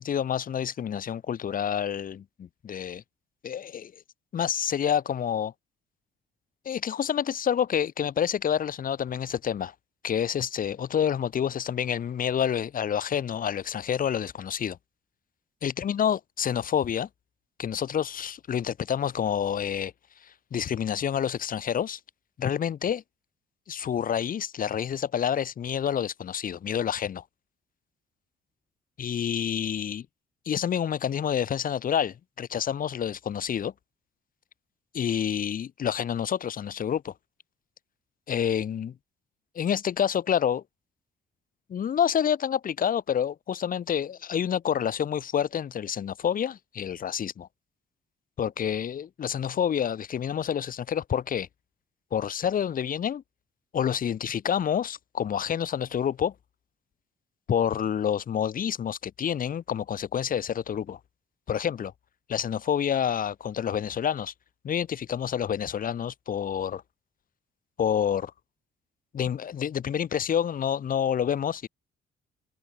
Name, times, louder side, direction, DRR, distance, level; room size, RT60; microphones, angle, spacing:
voice 1, 0.0-3.0 3.4-3.9 4.3-5.5 6.7-9.7 10.0-14.8 15.6-17.1 17.6-19.9 20.2-22.0 22.4-23.0 23.7-27.2 29.0-30.1 30.5-33.7 34.9-37.1 38.3-39.0 39.5-40.6 41.7-47.5 48.4-51.5 52.1-53.2 53.7-56.3 57.5-61.0 61.5-61.9 62.3-64.3 64.6-66.8 67.8-68.3 69.1-71.7, left 8 dB, 45° left, 0.7 m, -28 dB
cardioid pair, 90°, 20 cm